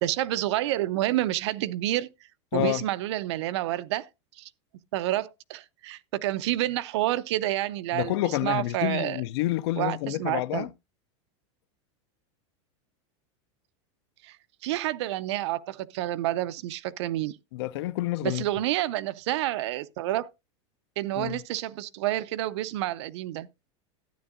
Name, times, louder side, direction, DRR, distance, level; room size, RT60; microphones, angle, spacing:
voice 1, 0.0-2.1 2.5-4.1 4.4-4.5 4.9-9.2 9.8-10.7 14.2-14.4 14.6-17.4 18.2-20.3 21.0-23.5, right 15 dB, 65° right, 0.5 m, -29 dB
voice 2, 2.5-2.8 7.9-10.7 17.5-18.5 21.2-21.4, left 16 dB, 60° left, 0.5 m, -28 dB
12.5 x 9.6 x 2.5 m
supercardioid pair, 170°, 16 cm